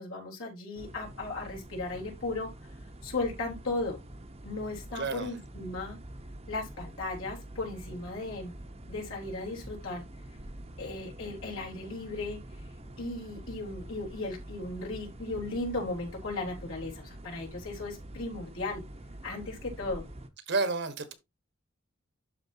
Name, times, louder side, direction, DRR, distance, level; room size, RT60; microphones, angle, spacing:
voice 1, 0.0-2.5 3.0-4.0 4.4-6.0 6.5-8.5 8.9-10.1 10.8-12.4 13.0-18.8 19.2-20.0, left 2 dB, 75° left, 3.7 m, -36 dB
sound 1, 0.7-20.3, right 1 dB, 30° right, 0.9 m, -46 dB
voice 2, 4.9-5.3 20.5-21.1, right 3 dB, 60° right, 1.3 m, -30 dB
12.0 x 4.5 x 2.8 m
head